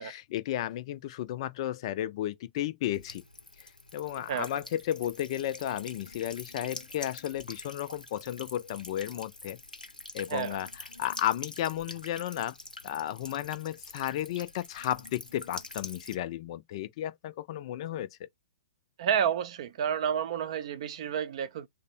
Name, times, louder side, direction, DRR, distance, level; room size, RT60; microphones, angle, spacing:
voice 1, 0.0-3.2 3.6-9.6 10.1-12.6 12.8-18.1, left 12 dB, 40° left, 0.4 m, -33 dB
Buzz / Water tap faucet / Trickle dribble, 2.9-16.1, left 2 dB, 85° left, 0.7 m, -46 dB
voice 2, 19.0-21.7, right 8 dB, 45° right, 0.5 m, -30 dB
3.3 x 2.1 x 4.2 m
figure-of-eight pair, 115°, 4 cm